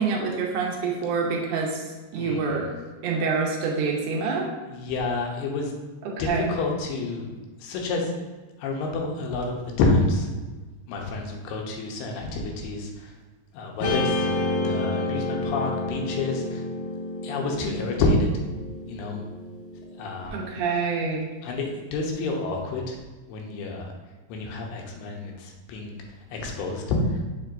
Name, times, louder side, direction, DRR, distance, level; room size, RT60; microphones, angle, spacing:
voice 1, 0.0-1.8 2.1-2.7 3.0-4.5 6.0-6.5 20.3-21.3, right 4 dB, 75° right, -1 dB, 1.9 m, -26 dB
voice 2, 2.2-2.5 4.7-5.7 6.2-6.3 6.6-7.3 7.6-8.0 8.6-10.3 10.9-12.9 13.5-14.2 14.6-16.6 17.2-18.3 18.9-19.2 20.0-20.3 21.4-23.0 23.3-23.9 24.3-25.9 26.3-26.8, left 3 dB, 80° left, 1 dB, 2.8 m, -28 dB
Guitar, 13.8-20.3, left 2 dB, 65° left, 2.1 m, -30 dB
7.4 x 5.7 x 2.6 m, 1.2 s
omnidirectional pair, 4.6 m